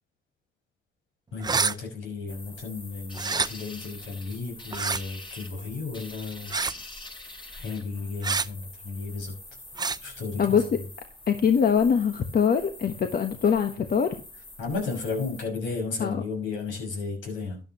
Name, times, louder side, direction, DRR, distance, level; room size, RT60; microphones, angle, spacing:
voice 1, 1.3-6.5 7.5-9.3 10.0-10.6 14.6-17.6, left 4 dB, 80° left, 2 dB, 6.0 m, -33 dB
sound 1, 1.4-1.7 3.1-3.5 4.7-5.0 6.5-6.8 8.2-8.5 9.8-10.0, right 5 dB, 20° right, 0.5 m, -26 dB
sound 2, 2.3-15.4, left 2 dB, 25° left, 6.1 m, -45 dB
voice 2, 11.3-14.1 16.0-16.2, left 7 dB, 50° left, 7 dB, 1.2 m, -23 dB
13.0 x 10.5 x 2.9 m, 0.36 s
cardioid pair, 90°, 20 cm